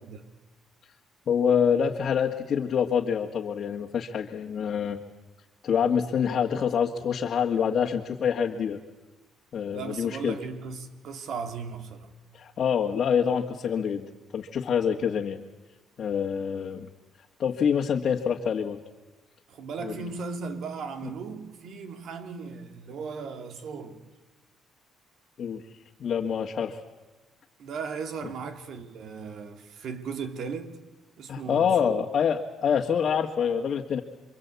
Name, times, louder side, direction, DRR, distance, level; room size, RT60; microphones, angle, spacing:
voice 1, 0.0-0.4 9.7-12.1 19.5-24.1 27.6-30.8 31.2-32.1, right 5 dB, 65° right, 2.6 m, -37 dB
voice 2, 1.3-5.0 5.6-8.8 9.5-10.4 12.3-14.1 14.3-15.4 16.0-16.9 17.4-18.8 19.8-20.0 25.4-25.6 26.0-26.8 31.3-34.0, left 7 dB, 55° left, 1.9 m, -26 dB
28.0 x 24.5 x 8.4 m
cardioid pair, 100°, 0 cm